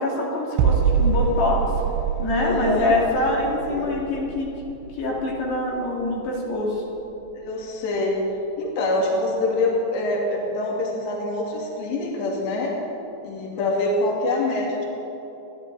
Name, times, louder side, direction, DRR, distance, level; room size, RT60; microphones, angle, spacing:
voice 1, 0.0-1.6 2.2-4.5 5.0-6.8, left 2 dB, 80° left, -4 dB, 4.7 m, -24 dB
sound 1, 0.6-6.3 6.5-6.8, right 7 dB, 80° right, 2.3 m, -25 dB
voice 2, 2.4-3.0 3.7-3.9 7.4-8.2 8.6-12.7 13.2-14.8, left 2 dB, 60° left, -3 dB, 4.0 m, -25 dB
29.0 x 11.5 x 4.1 m, 3.0 s
omnidirectional pair, 4.7 m